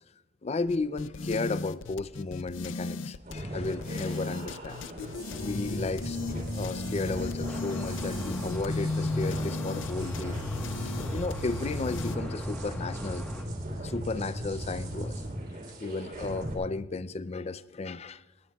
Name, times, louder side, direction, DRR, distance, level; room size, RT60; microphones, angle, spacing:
voice 1, 0.4-4.8 5.4-10.4 10.7-13.3 13.8-15.2 15.8-18.2, left 3 dB, 35° left, 0.4 m, -34 dB
sound 1, 0.7-12.2, left 3 dB, 80° left, 0.6 m, -36 dB
sound 2, 3.2-16.5, right 1 dB, 45° right, 3.5 m, -37 dB
sound 3, 7.5-13.4, left 1 dB, 5° left, 1.3 m, -44 dB
20.0 x 19.5 x 2.3 m
head